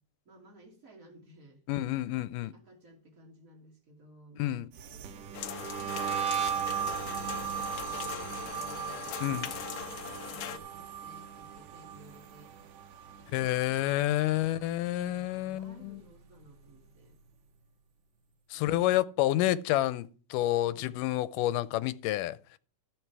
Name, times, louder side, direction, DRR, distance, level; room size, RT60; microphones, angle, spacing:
voice 1, 0.2-1.6 2.4-9.1 9.6-12.5 13.2-17.2 18.5-19.0 20.6-21.1, right 1 dB, 25° right, 2.9 m, -56 dB
voice 2, 1.7-2.5 4.4-4.7 9.2-9.5 13.3-16.0 18.5-22.6, left 14 dB, 90° left, 2.2 m, -29 dB
sound 1, 4.7-13.9 14.2-14.6 15.0-16.5, right 8 dB, 85° right, 2.7 m, -37 dB
sound 2, 5.3-10.6, left 11 dB, 75° left, 1.6 m, -41 dB
12.5 x 7.8 x 4.7 m
omnidirectional pair, 3.7 m